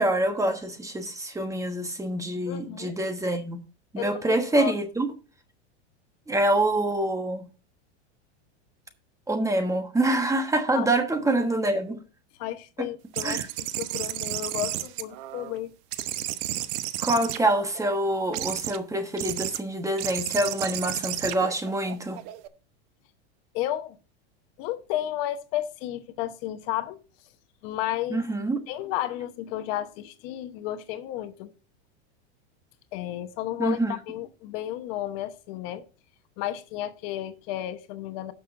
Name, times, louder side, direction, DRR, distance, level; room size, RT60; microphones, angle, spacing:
voice 1, 0.0-3.6 3.9-5.1 6.3-7.5 9.3-12.0 13.2-13.5 17.0-22.2 28.1-28.6 33.6-34.0, right 1 dB, 10° right, 1.3 m, -26 dB
voice 2, 2.5-3.0 4.0-4.7 10.7-10.9 12.4-15.7 23.5-24.0 24.6-27.0 27.6-28.2 28.7-31.5 32.9-33.8 34.1-35.8 36.4-38.3, left 13 dB, 55° left, 1.1 m, -32 dB
sound 1, 13.1-15.6 15.9-17.9 18.3-18.8 19.2-19.6 20.0-22.5, right 15 dB, 55° right, 0.9 m, -32 dB
17.5 x 6.3 x 2.6 m
supercardioid pair, 125°, 34 cm